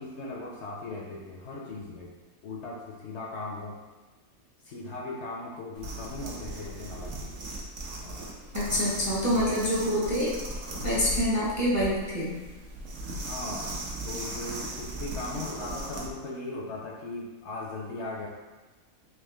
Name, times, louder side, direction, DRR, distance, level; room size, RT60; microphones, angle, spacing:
voice 1, 0.0-2.1 2.4-3.8 4.6-7.3 8.0-8.3 8.7-9.5 13.0-13.7 14.0-18.3, left 2 dB, 65° left, -2 dB, 0.8 m, -38 dB
sound 1, 5.8-16.1, right 1 dB, 65° right, 1.0 m, -37 dB
voice 2, 8.5-10.3 10.8-12.3, equal, 20° right, -7 dB, 0.5 m, -26 dB
3.5 x 2.7 x 3.3 m, 1.2 s
omnidirectional pair, 1.4 m